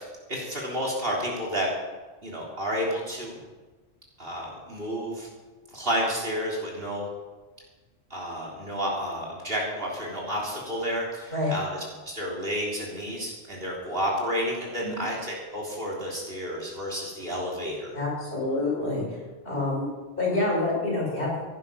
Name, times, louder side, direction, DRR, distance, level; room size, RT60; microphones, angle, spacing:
voice 1, 0.0-1.7 2.2-3.4 4.2-5.3 5.7-7.1 8.1-18.0, equal, 50° right, -3 dB, 3.6 m, -31 dB
voice 2, 17.9-19.2 19.4-21.4, left 2 dB, 50° left, -5 dB, 6.3 m, -27 dB
16.0 x 10.5 x 5.6 m, 1.3 s
omnidirectional pair, 1.2 m